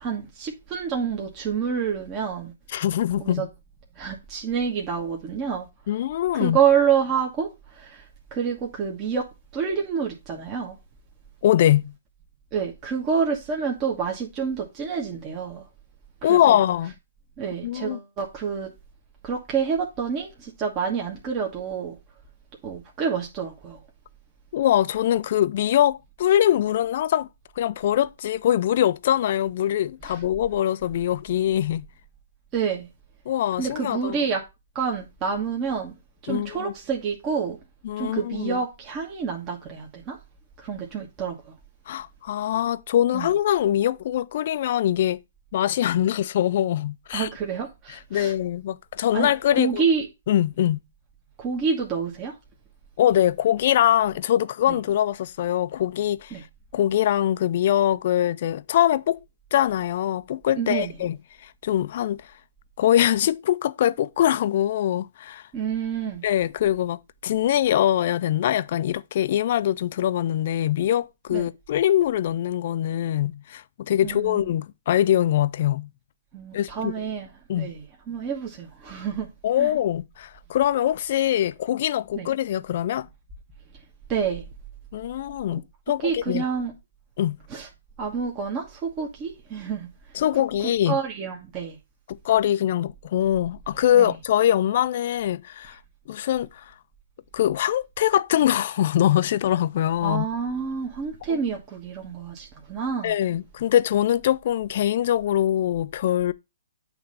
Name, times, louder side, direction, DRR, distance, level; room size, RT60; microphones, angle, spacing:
voice 1, 0.0-2.5 3.2-3.5 4.0-5.7 6.3-8.1 8.3-9.2 9.5-10.8 12.5-15.7 16.3-16.6 17.4-18.7 19.2-22.0 22.6-23.8 30.1-30.2 32.5-32.9 33.6-34.4 34.7-35.9 36.2-37.6 38.0-40.2 40.6-41.5 43.1-43.3 47.1-48.3 49.1-50.1 51.4-52.3 54.7-54.8 56.3-56.4 60.6-60.9 65.5-66.2 71.3-71.5 74.0-74.5 76.3-77.3 77.6-79.3 79.6-79.7 82.1-82.3 84.1-84.4 86.0-86.7 87.5-87.7 88.0-89.9 90.9-91.8 93.9-94.1 100.0-103.1, right 6 dB, 30° right, 1.4 m, -28 dB
voice 2, 2.7-3.5 5.9-6.6 11.4-11.9 16.2-16.9 17.6-18.0 24.5-27.3 27.6-31.9 33.3-34.2 36.3-36.7 37.8-38.6 41.9-45.2 45.5-47.3 48.1-49.8 50.3-50.8 53.0-56.4 56.7-59.2 59.5-61.2 61.4-62.2 62.8-65.5 66.2-75.9 76.5-76.9 77.5-77.7 79.4-83.1 84.9-86.4 87.2-87.4 90.1-91.0 92.1-95.8 96.1-96.7 97.3-100.3 101.3-101.4 103.0-106.3, left 11 dB, 50° left, 0.4 m, -23 dB
8.8 x 3.2 x 5.4 m
hypercardioid pair, 135°, 0 cm